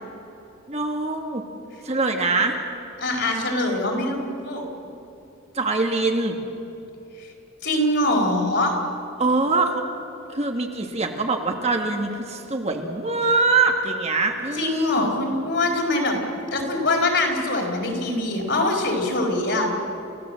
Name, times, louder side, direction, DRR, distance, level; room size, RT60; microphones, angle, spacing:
voice 1, 0.7-1.4 1.8-2.6 5.5-6.4 9.2-9.8 10.3-15.1, right 3 dB, 30° right, 4 dB, 1.7 m, -23 dB
voice 2, 3.0-4.6 7.2-7.3 7.6-8.7 14.5-16.2 16.5-19.7, left 2 dB, 55° left, 0 dB, 4.4 m, -23 dB
29.5 x 16.0 x 7.7 m, 2.9 s
head